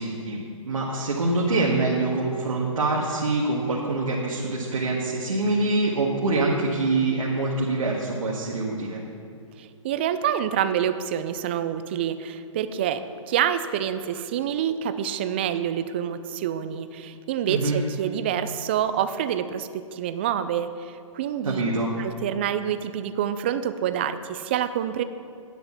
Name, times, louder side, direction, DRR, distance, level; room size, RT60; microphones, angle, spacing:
voice 1, 0.0-9.0 17.5-17.8 21.4-21.9, right 2 dB, 80° right, -4 dB, 1.8 m, -25 dB
voice 2, 9.6-13.0 13.3-21.6 22.0-25.0, right 9 dB, 20° right, 11 dB, 0.3 m, -27 dB
10.5 x 8.0 x 7.2 m, 2.4 s
hypercardioid pair, 155°, 17 cm